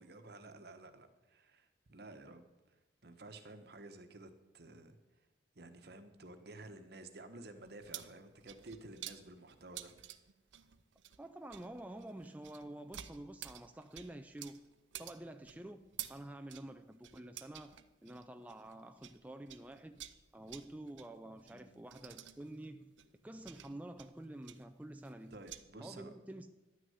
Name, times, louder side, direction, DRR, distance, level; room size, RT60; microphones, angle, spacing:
voice 1, 0.0-2.7 3.0-5.0 5.5-10.1 15.5-15.7 21.5-21.8 25.3-26.1, right 2 dB, 60° right, 1.1 m, -53 dB
sound 1, 7.6-19.2 19.5-25.6, right 12 dB, 85° right, 0.6 m, -52 dB
voice 2, 11.2-14.7 15.0-20.1 20.3-22.9 23.2-25.4 25.8-26.5, right 1 dB, 10° right, 0.4 m, -49 dB
11.0 x 6.4 x 9.2 m
head